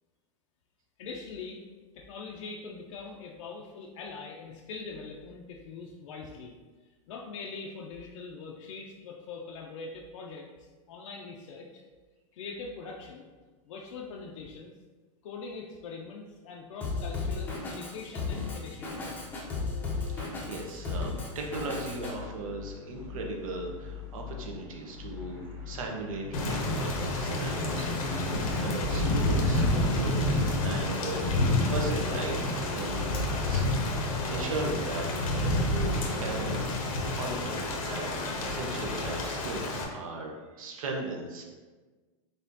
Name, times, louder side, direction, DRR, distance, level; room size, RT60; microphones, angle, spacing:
voice 1, 1.0-1.6 1.9-6.5 7.1-11.8 12.3-13.3 13.7-14.7 15.2-19.1, left 4 dB, 65° left, -1 dB, 0.5 m, -42 dB
Drum kit, 16.8-22.1, left 4 dB, 10° left, 0.5 m, -34 dB
sound 1, 18.8-29.0, left 7 dB, 20° right, 1.1 m, -45 dB
voice 2, 20.1-33.7 33.9-41.4, right 2 dB, 80° right, 1 dB, 0.9 m, -38 dB
Thunder / Rain, 26.3-39.8, left 1 dB, 90° left, 0.9 m, -29 dB
4.2 x 3.4 x 2.6 m, 1.3 s
supercardioid pair, 160°, 17 cm